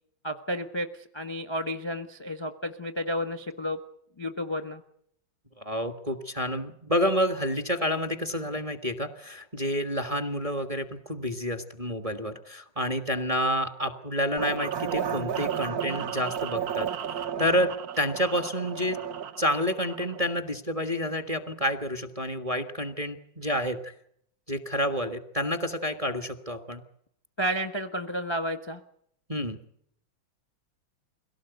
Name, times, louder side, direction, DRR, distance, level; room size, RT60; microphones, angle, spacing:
voice 1, 0.2-3.8 4.2-4.8 27.4-28.8, equal, 20° left, 8 dB, 0.9 m, -31 dB
voice 2, 5.6-16.9 17.4-19.0 19.4-23.9 24.5-26.8 29.3-29.6, equal, 20° right, 7 dB, 1.2 m, -29 dB
sound 1, 14.4-20.3, right 9 dB, 55° right, 1.4 m, -33 dB
23.0 x 17.5 x 8.0 m, 0.71 s
omnidirectional pair, 2.3 m